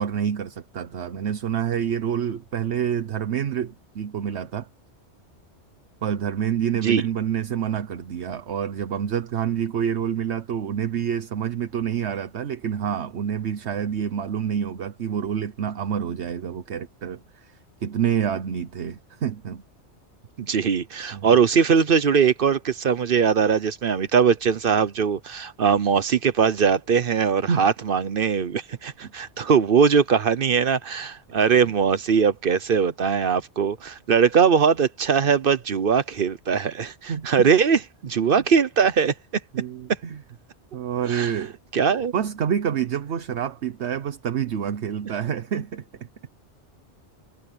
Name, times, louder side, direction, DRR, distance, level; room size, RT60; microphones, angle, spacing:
voice 1, 0.0-4.7 6.0-17.5 17.8-19.6 21.1-21.3 27.5-27.7 29.0-29.1 31.6-31.7 37.1-37.5 39.5-40.2 40.7-41.6 42.1-45.8, right 8 dB, 70° right, 1.2 m, -27 dB
voice 2, 20.4-39.1 41.1-41.3 41.7-42.1, right 6 dB, 55° right, 0.9 m, -21 dB
omnidirectional pair, 1.2 m